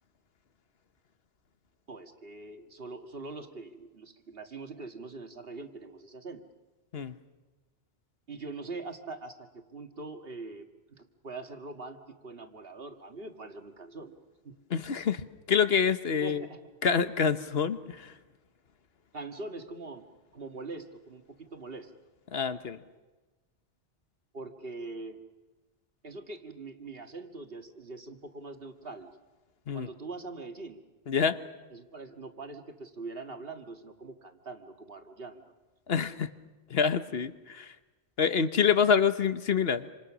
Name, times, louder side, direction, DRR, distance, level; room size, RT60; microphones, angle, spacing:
voice 1, 1.9-6.4 8.3-14.2 14.4-14.6 16.2-16.6 19.1-20.0 20.3-21.9 24.3-25.2 26.0-29.2 29.7-30.8 31.7-35.5, right 3 dB, 60° right, 5 dB, 2.1 m, -43 dB
voice 2, 14.7-16.5 16.8-18.1 22.3-22.8 29.7-29.9 31.1-31.4 35.9-36.3 36.7-37.7 38.2-39.9, left 6 dB, 65° left, 11 dB, 1.3 m, -27 dB
27.5 x 27.0 x 6.2 m, 1.2 s
omnidirectional pair, 1.1 m